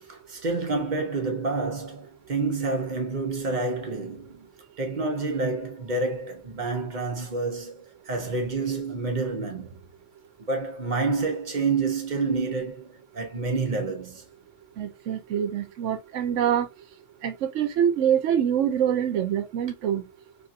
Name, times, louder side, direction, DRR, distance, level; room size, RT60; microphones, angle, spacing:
voice 1, 0.1-4.5 4.8-9.8 10.5-14.2, right 3 dB, 40° right, 0.8 m, -28 dB
voice 2, 14.8-16.7 17.2-20.0, right 9 dB, 70° right, 1.0 m, -25 dB
3.3 x 2.6 x 2.5 m
omnidirectional pair, 1.3 m